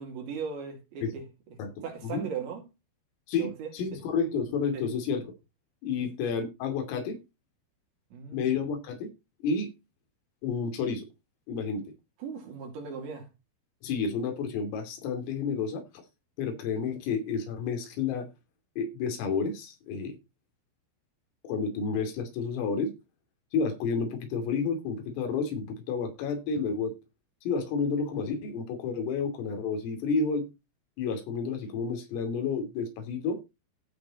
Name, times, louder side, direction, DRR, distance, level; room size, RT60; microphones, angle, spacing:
voice 1, 0.0-2.6 3.4-4.0 4.7-4.8 8.1-8.5 12.2-13.3, right 6 dB, 65° right, 5.2 m, -38 dB
voice 2, 3.3-5.2 5.8-7.2 8.3-9.1 9.4-9.7 10.4-11.1 11.5-11.9 13.8-16.0 16.4-18.3 18.8-20.2 21.4-22.9 23.5-27.0 27.4-30.5 31.0-33.4, left 5 dB, 90° left, 5.2 m, -30 dB
15.5 x 5.2 x 4.1 m
omnidirectional pair, 5.7 m